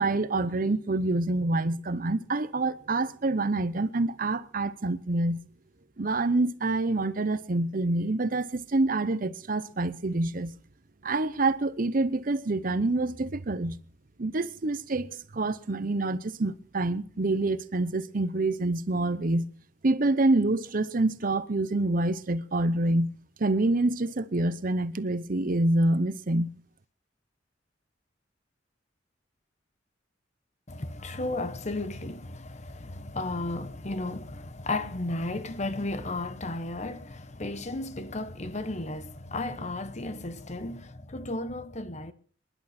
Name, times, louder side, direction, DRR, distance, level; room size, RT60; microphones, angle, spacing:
voice 1, 0.0-5.4 6.0-10.5 11.0-13.8 14.2-19.5 19.8-23.1 23.4-26.5, right 2 dB, 45° right, 0.8 m, -27 dB
voice 2, 30.7-42.1, left 2 dB, 35° left, 1.0 m, -34 dB
26.0 x 11.0 x 4.3 m
head